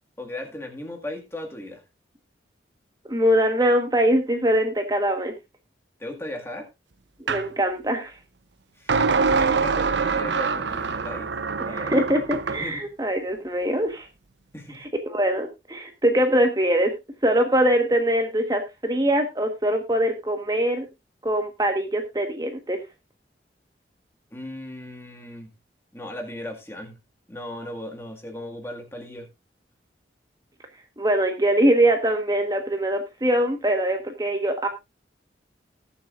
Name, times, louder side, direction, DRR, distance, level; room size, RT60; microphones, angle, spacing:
voice 1, 0.2-1.8 6.0-6.7 8.8-11.3 11.6-12.0 12.6-12.9 14.5-14.9 24.3-25.5 25.9-26.9 27.3-29.3, left 1 dB, 15° left, 2.0 m, -37 dB
voice 2, 3.1-5.3 7.2-8.2 11.6-14.1 14.7-16.9 17.2-20.9 21.2-22.8 31.0-34.7, right 1 dB, 20° right, 1.3 m, -23 dB
sound 1, 7.3-7.5 8.9-12.7, right 5 dB, 80° right, 0.8 m, -24 dB
19.5 x 7.2 x 2.5 m
head